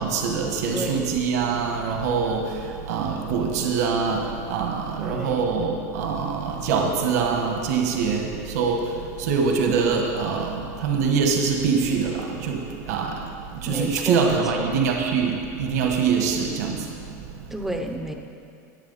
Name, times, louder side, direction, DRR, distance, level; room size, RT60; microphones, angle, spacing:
voice 1, 0.0-2.5 2.9-8.8 9.2-12.6 12.9-13.2 13.6-16.8, right 5 dB, 70° right, 2 dB, 1.4 m, -24 dB
voice 2, 0.7-1.2 5.0-5.5 13.6-14.7 17.5-18.1, right 1 dB, 5° right, 3 dB, 0.7 m, -31 dB
18.5 x 7.5 x 4.1 m, 2.4 s
supercardioid pair, 160°, 9 cm